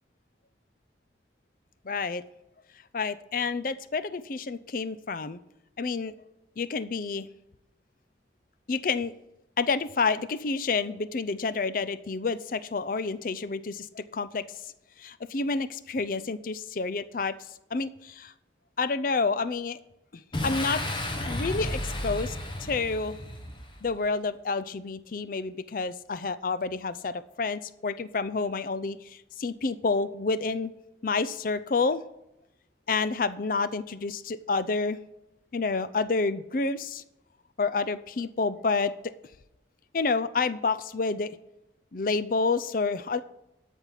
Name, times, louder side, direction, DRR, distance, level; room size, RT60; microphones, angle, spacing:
voice 1, 1.8-2.2 2.9-5.4 5.8-6.1 6.6-7.3 8.7-9.1 9.6-14.4 15.0-17.3 17.7-18.3 18.8-19.8 20.1-20.8 21.3-22.4 22.6-23.2 23.8-30.7 31.0-32.0 32.9-35.0 35.5-37.0 37.6-38.9 39.9-41.4 41.9-43.2, left 4 dB, 50° left, 14 dB, 0.5 m, -29 dB
Boom, 20.3-23.9, left 1 dB, 25° left, 1.2 m, -33 dB
13.0 x 5.4 x 5.8 m, 0.88 s
head